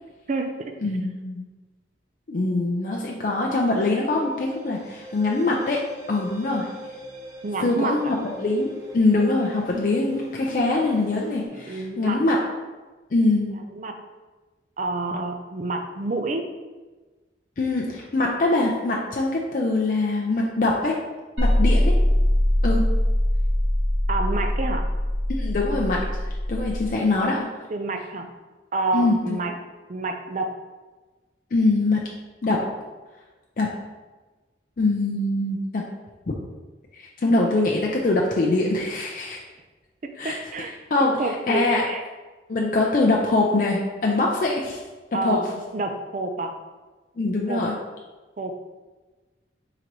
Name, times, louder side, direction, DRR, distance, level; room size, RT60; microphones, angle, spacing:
voice 1, 0.8-1.4 2.3-5.8 6.1-6.7 7.6-12.4 13.1-13.6 17.6-21.0 21.4-22.0 22.6-22.8 25.3-26.0 26.5-27.5 28.9-29.4 31.5-32.0 32.4-32.6 33.6-33.7 34.8-35.8 36.3-36.4 37.0-39.4 40.2-40.4 40.9-41.9 42.5-44.8 45.2-45.4 47.2-47.7, left 2 dB, 45° left, -2 dB, 0.4 m, -23 dB
sound 1, 2.7-11.5, equal, 20° right, 0.9 m, -44 dB
voice 2, 7.4-8.1 11.5-12.2 13.7-13.9 14.8-16.4 24.1-24.8 27.7-28.3 28.7-29.5 29.9-30.5 40.2-40.7 41.0-42.0 45.1-45.5 45.7-46.5 47.5-47.6 48.4-48.5, right 2 dB, 40° right, 5 dB, 0.4 m, -28 dB
sound 2, 21.4-26.9, left 1 dB, 90° right, 1.3 m, -22 dB
3.8 x 3.0 x 4.5 m, 1.2 s
head